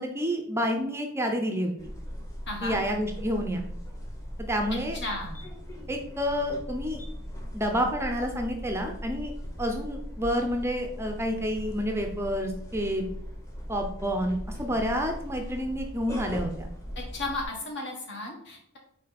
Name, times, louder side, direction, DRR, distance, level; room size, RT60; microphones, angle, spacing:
voice 1, 0.0-1.9 2.6-3.6 4.4-5.0 5.9-7.0 7.5-9.3 9.6-13.1 13.7-16.7, equal, 10° right, 4 dB, 0.6 m, -29 dB
sound 1, 1.8-17.4, equal, 15° left, 1.1 m, -39 dB
voice 2, 2.5-2.8 4.9-5.4 17.1-18.8, left 2 dB, 55° left, 1 dB, 1.7 m, -34 dB
5.4 x 4.4 x 4.2 m, 0.69 s
head